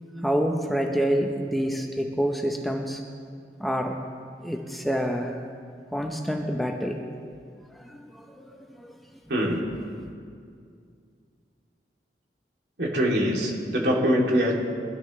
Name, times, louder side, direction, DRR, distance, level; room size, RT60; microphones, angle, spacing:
voice 1, 0.2-3.0 3.6-4.0 4.4-5.3 5.9-7.0 7.7-9.0, equal, ahead, 1 dB, 0.8 m, -27 dB
voice 2, 9.3-9.6 12.8-14.5, equal, 75° right, -3 dB, 3.0 m, -23 dB
23.0 x 12.5 x 3.3 m, 2.3 s
head